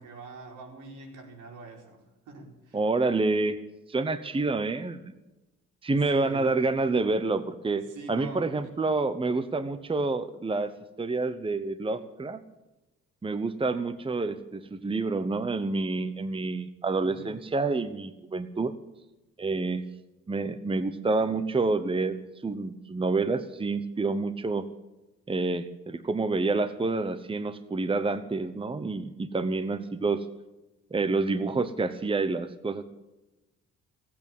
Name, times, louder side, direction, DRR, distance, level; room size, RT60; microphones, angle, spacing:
voice 1, 0.0-2.8 6.1-6.6 7.9-8.7 17.1-17.3, right 3 dB, 80° right, 1 dB, 4.8 m, -45 dB
voice 2, 2.7-3.6 3.9-5.1 5.8-10.7 11.0-12.4 13.2-18.7 19.4-19.8 20.3-24.7 25.3-30.3 30.9-32.8, right 3 dB, 15° right, 12 dB, 1.0 m, -28 dB
17.5 x 8.6 x 9.0 m, 1.0 s
cardioid pair, 90°, 30 cm